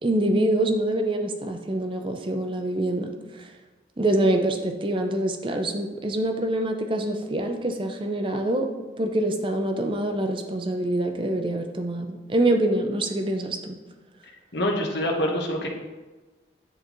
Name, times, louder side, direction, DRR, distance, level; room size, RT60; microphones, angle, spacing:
voice 1, 0.0-3.1 3.4-3.5 4.0-8.7 9.0-13.7, right 1 dB, 30° right, 5 dB, 0.6 m, -25 dB
voice 2, 14.5-15.7, left 1 dB, 70° left, 1 dB, 1.1 m, -25 dB
9.7 x 3.9 x 3.1 m, 1.2 s
head